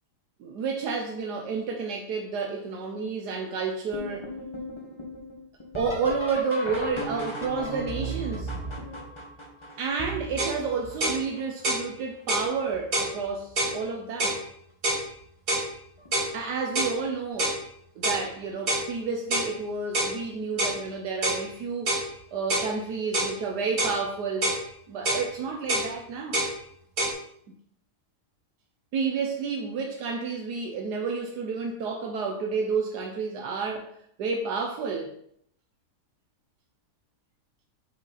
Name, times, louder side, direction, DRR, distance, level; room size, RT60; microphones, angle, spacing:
voice 1, 0.4-4.3 5.7-8.5 9.8-14.4 16.3-17.6 17.9-22.0 22.3-24.5 24.9-26.4 28.9-33.9 34.2-35.1, right 5 dB, 85° right, 1.4 m, -30 dB
sound 1, 3.9-11.6 12.3-12.8 13.3-13.9 15.2-15.3 16.0-16.3 18.5-18.6 20.9-21.0, right 1 dB, 20° left, 1.3 m, -37 dB
sound 2, 10.4-10.6 11.0-11.2 11.6-11.9 12.3-12.5 12.9-13.1 13.6-13.8 14.2-14.4 14.8-15.1 15.5-15.7 16.1-16.3 16.8-17.0 17.4-17.6 18.0-18.2 18.7-18.9 19.3-19.5 19.9-20.2 20.6-20.8 21.2-21.4 21.9-22.1 22.5-22.7 23.1-23.4 23.8-24.0 24.4-24.6 25.1-25.3 25.7-25.9 26.3-26.5 27.0-27.1, right 1 dB, 70° right, 2.4 m, -26 dB
6.6 x 5.6 x 4.0 m
omnidirectional pair, 1.7 m